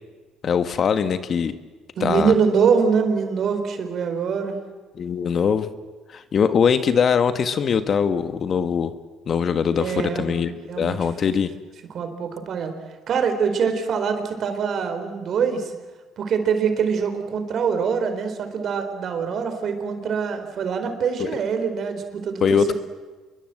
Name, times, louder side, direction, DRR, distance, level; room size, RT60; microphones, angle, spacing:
voice 1, 0.4-1.5 2.0-2.3 5.0-5.7 6.1-8.9 9.3-10.5 10.8-11.5 21.2-21.3 22.4-22.7, left 6 dB, 45° left, 11 dB, 1.5 m, -21 dB
voice 2, 2.0-4.6 9.8-10.3 10.7-11.0 11.9-12.7 13.1-15.7 16.2-22.7, right 6 dB, 55° right, 7 dB, 4.4 m, -24 dB
28.0 x 22.0 x 7.9 m, 1.3 s
cardioid pair, 100°, 0 cm